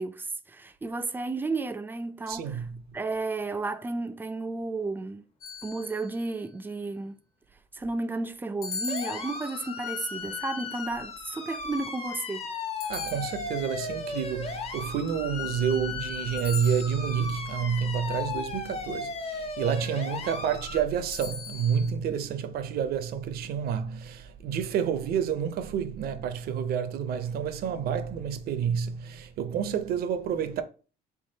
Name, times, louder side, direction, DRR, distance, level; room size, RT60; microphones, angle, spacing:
voice 1, 0.0-2.7 2.9-5.3 5.6-7.2 7.7-12.5, right 3 dB, 10° right, 0.3 m, -33 dB
voice 2, 2.3-2.9 12.9-30.6, right 7 dB, 65° right, 0.5 m, -29 dB
sound 1, 5.4-6.3 8.6-9.9 12.8-13.9 16.4-17.3 21.1-21.9, left 5 dB, 70° left, 1.3 m, -39 dB
sound 2, 8.9-20.8, left 4 dB, 35° left, 0.7 m, -36 dB
3.5 x 3.5 x 2.7 m
cardioid pair, 110°, 17 cm